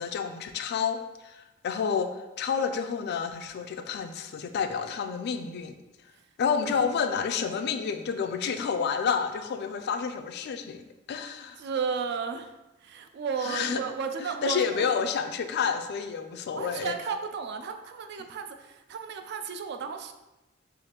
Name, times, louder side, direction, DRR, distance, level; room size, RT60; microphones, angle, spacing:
voice 1, 0.0-5.7 6.4-11.6 13.4-13.8 14.2-17.0, left 6 dB, 55° left, 7 dB, 0.3 m, -30 dB
voice 2, 11.6-12.5 12.8-14.9 16.5-20.1, right 6 dB, 55° right, 7 dB, 0.3 m, -33 dB
4.9 x 2.5 x 2.8 m, 1.0 s
head